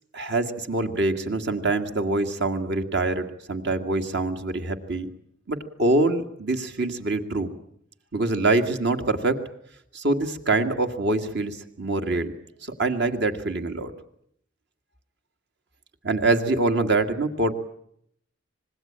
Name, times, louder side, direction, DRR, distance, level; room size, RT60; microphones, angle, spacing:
voice 1, 0.1-5.1 5.5-7.5 8.1-9.4 9.9-12.3 12.8-13.9 16.0-17.5, right 2 dB, 60° right, 7 dB, 2.1 m, -24 dB
26.0 x 20.5 x 8.8 m, 0.70 s
head